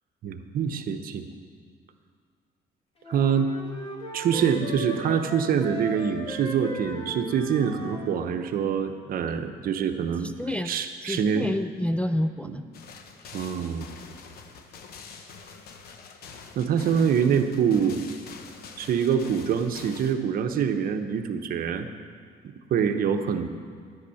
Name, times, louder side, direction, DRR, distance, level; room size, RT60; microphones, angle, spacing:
voice 1, 0.2-1.3 3.1-3.5 4.1-10.3 10.6-11.5 12.4-12.6 13.3-13.9 16.6-18.0 18.8-21.9 22.4-23.5, right 7 dB, 60° right, 7 dB, 0.9 m, -25 dB
sound 1, 3.0-8.2, left 1 dB, 35° left, 1.9 m, -37 dB
voice 2, 10.2-12.6, left 1 dB, 5° left, 7 dB, 0.4 m, -29 dB
sound 2, 12.7-20.1, left 5 dB, 65° left, 1.1 m, -45 dB
11.0 x 8.3 x 7.0 m, 2.1 s
cardioid pair, 110°, 17 cm